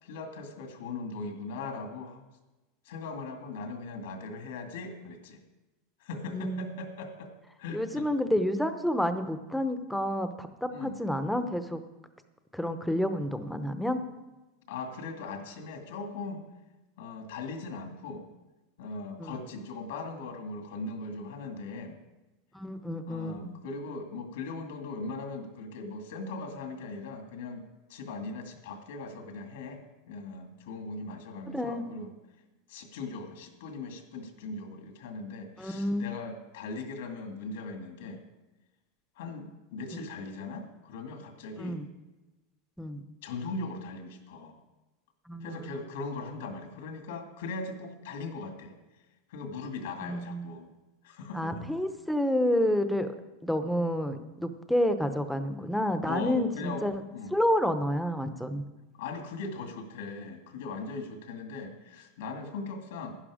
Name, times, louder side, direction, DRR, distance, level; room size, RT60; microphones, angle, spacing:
voice 1, 0.0-2.3 2.9-5.4 6.0-7.3 7.6-8.1 10.7-11.0 14.7-16.4 17.0-18.2 18.8-22.0 23.1-27.6 27.9-32.1 32.7-38.2 39.2-41.8 43.2-44.6 45.4-48.7 49.3-50.7 51.0-51.6 56.1-57.4 59.0-63.2, left 3 dB, 80° left, 4 dB, 2.2 m, -39 dB
voice 2, 6.3-6.7 7.7-11.8 12.5-14.0 19.2-19.3 22.5-23.5 31.5-31.8 35.6-36.1 39.9-40.0 41.6-41.9 42.8-43.0 45.3-45.7 50.0-50.5 51.3-53.1 53.4-57.0 57.3-58.6, left 1 dB, ahead, 9 dB, 0.8 m, -29 dB
11.5 x 10.5 x 5.0 m, 1.1 s
supercardioid pair, 150°, 0 cm